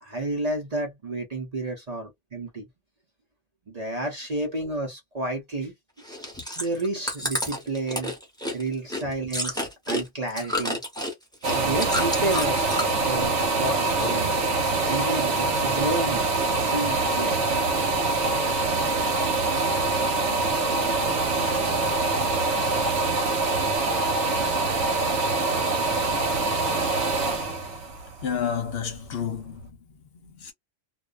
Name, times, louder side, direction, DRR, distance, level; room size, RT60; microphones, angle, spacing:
voice 1, 0.0-2.7 3.7-5.7 6.6-8.1 8.5-10.8 11.5-14.3 14.9-16.3 16.6-17.4, right 2 dB, 40° right, 0.7 m, -31 dB
Chewing mastication, 6.0-13.1 13.4-14.1 14.4-15.3 15.8-15.9, left 1 dB, 5° left, 0.9 m, -31 dB
sound 1, 11.4-29.1 29.6-29.7, right 3 dB, 80° right, 1.1 m, -24 dB
voice 2, 28.2-30.5, left 7 dB, 60° left, 0.9 m, -31 dB
2.4 x 2.2 x 2.4 m
omnidirectional pair, 1.2 m